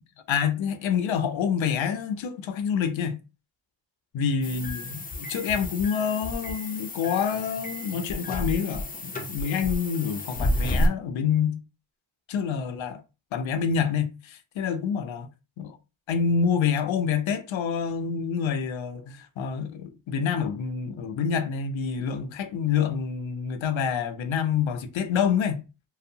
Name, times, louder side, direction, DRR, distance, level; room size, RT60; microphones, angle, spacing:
voice 1, 0.3-3.2 4.1-11.6 12.3-13.0 13.3-15.3 15.6-15.8 16.1-25.6, left 7 dB, 75° left, 0.6 m, -27 dB
sound 1, 4.4-10.9, left 1 dB, 20° left, 0.5 m, -31 dB
2.7 x 2.0 x 2.6 m
cardioid pair, 55°, 47 cm